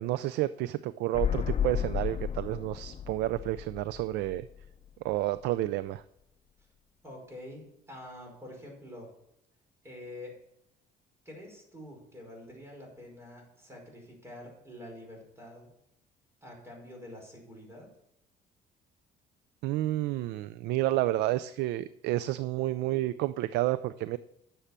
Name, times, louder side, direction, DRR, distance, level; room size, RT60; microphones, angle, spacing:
voice 1, 0.0-4.5 5.0-6.0 19.6-24.2, right 15 dB, 85° right, 15 dB, 0.4 m, -30 dB
sound 1, 1.1-4.9 5.2-5.3, left 9 dB, 35° left, 0.8 m, -33 dB
voice 2, 7.0-9.1 9.8-10.4 11.2-15.7 16.4-17.9, left 1 dB, 15° right, 0 dB, 5.2 m, -46 dB
10.0 x 7.1 x 7.4 m, 0.82 s
cardioid pair, 110°, 17 cm